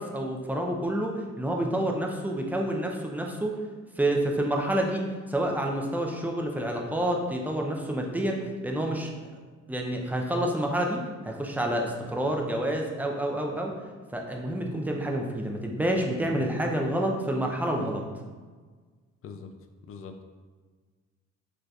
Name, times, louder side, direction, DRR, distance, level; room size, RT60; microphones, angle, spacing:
voice 1, 0.0-3.6 4.0-5.0 5.3-9.1 9.7-13.7 14.1-18.0, right 1 dB, 5° right, 1 dB, 0.5 m, -28 dB
voice 2, 19.9-20.2, left 5 dB, 45° left, 6 dB, 0.4 m, -42 dB
4.8 x 3.1 x 2.4 m, 1.4 s
cardioid pair, 90°, 30 cm